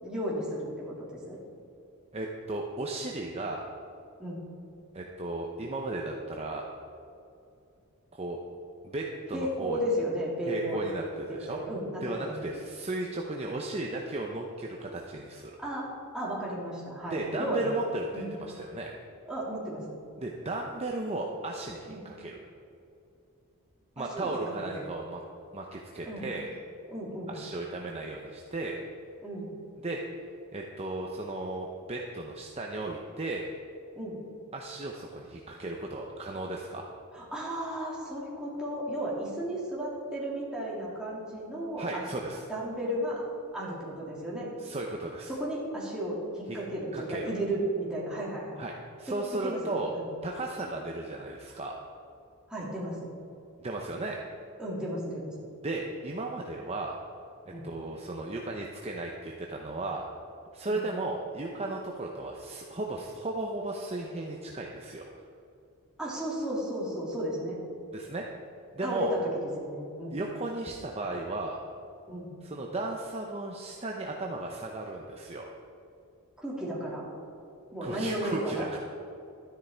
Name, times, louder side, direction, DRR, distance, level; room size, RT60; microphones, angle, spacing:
voice 1, 0.0-1.4 4.2-4.4 9.3-10.8 11.3-12.3 15.6-15.9 16.1-17.7 18.1-18.3 19.3-19.8 21.9-22.0 24.0-24.8 26.1-26.2 26.9-27.3 29.2-29.5 34.0-34.2 37.1-42.0 42.5-43.2 43.5-44.5 45.3-48.6 49.4-50.1 52.5-53.1 54.6-55.3 57.5-57.6 60.6-60.8 66.0-67.6 68.8-69.2 69.6-70.2 72.1-72.3 76.4-77.0 77.7-78.8, right 1 dB, 5° right, -7 dB, 3.0 m, -34 dB
voice 2, 2.1-3.7 4.9-6.6 8.1-8.4 8.8-9.8 10.5-11.6 12.0-15.6 17.1-18.9 20.2-22.4 24.0-25.2 25.5-26.5 27.3-28.8 29.8-30.0 30.5-33.5 34.5-36.8 41.8-42.4 44.6-45.3 46.5-46.6 46.9-47.3 48.6-48.7 49.0-49.9 50.2-51.8 53.6-54.2 55.6-57.0 57.6-60.1 60.5-65.1 67.9-68.3 68.7-69.1 70.1-71.6 72.4-75.5 77.8-78.8, right 2 dB, 30° right, 0 dB, 0.8 m, -35 dB
12.5 x 10.0 x 4.5 m, 2.6 s
head